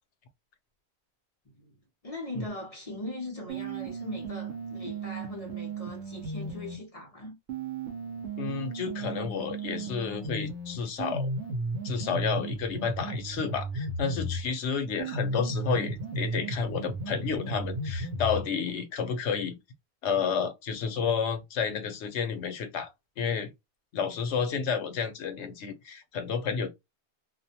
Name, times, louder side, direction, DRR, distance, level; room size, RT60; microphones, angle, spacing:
voice 1, 1.5-1.8 2.0-7.4, left 1 dB, 35° left, 0.7 m, -40 dB
sound 1, 3.5-6.8 7.5-14.5 15.0-18.5, right 2 dB, 80° right, 0.9 m, -34 dB
voice 2, 8.4-11.3 11.8-19.6 20.0-22.9 23.2-23.5 23.9-26.7, left 6 dB, 90° left, 1.0 m, -31 dB
2.5 x 2.1 x 2.7 m
omnidirectional pair, 1.1 m